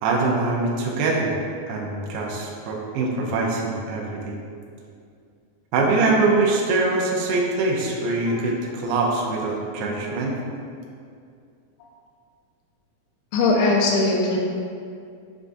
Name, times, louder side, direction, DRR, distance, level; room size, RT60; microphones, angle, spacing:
voice 1, 0.0-1.4 1.7-4.4 5.7-10.3, right 3 dB, 80° right, -2 dB, 2.3 m, -23 dB
voice 2, 13.3-14.4, left 3 dB, 80° left, -1 dB, 2.2 m, -21 dB
6.4 x 2.3 x 2.5 m, 2.3 s
omnidirectional pair, 4.2 m